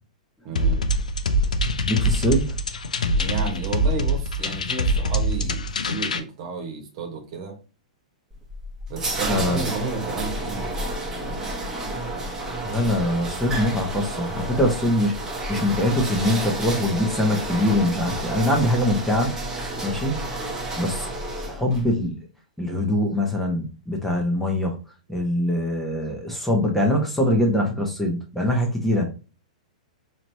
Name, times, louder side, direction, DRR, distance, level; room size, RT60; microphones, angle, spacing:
voice 1, 0.4-0.9 3.1-7.6 8.9-11.5 19.7-19.9 25.1-25.2, right 5 dB, 50° right, 1.3 m, -33 dB
sound 1, 0.6-6.2, equal, 80° left, 0.5 m, -24 dB
voice 2, 1.9-2.6 9.3-9.6 12.6-19.3 19.8-20.2 20.8-22.2 22.6-24.8 25.1-29.1, left 1 dB, 5° left, 1.0 m, -23 dB
sound 2, 8.3-21.9, right 1 dB, 15° right, 1.2 m, -30 dB
4.1 x 3.0 x 2.7 m
figure-of-eight pair, 110°, 4 cm